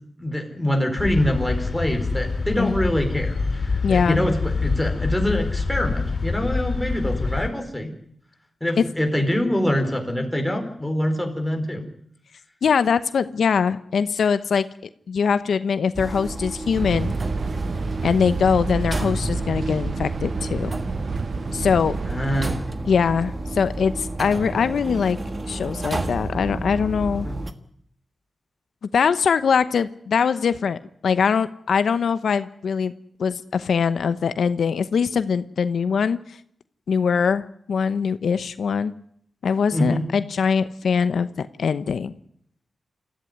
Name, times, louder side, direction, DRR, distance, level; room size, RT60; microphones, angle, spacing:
voice 1, 0.2-7.9 8.6-11.8 22.1-22.6 27.2-27.3 39.7-40.1, left 1 dB, 5° left, 3 dB, 4.5 m, -24 dB
sound 1, 1.0-7.5, left 4 dB, 45° left, 4.8 m, -26 dB
voice 2, 3.8-4.3 8.8-8.9 12.6-14.6 15.1-17.1 18.0-20.8 21.5-22.0 22.9-25.2 25.5-27.3 28.9-30.8 31.0-32.9 33.2-36.4 36.9-38.9 39.4-42.1, left 6 dB, 85° left, 12 dB, 0.9 m, -22 dB
sound 2, 15.9-27.5, right 2 dB, 25° right, 1.5 m, -31 dB
sound 3, 16.7-22.6, right 4 dB, 55° right, 0.9 m, -29 dB
28.0 x 14.5 x 9.6 m, 0.69 s
wide cardioid pair, 130°, 0 cm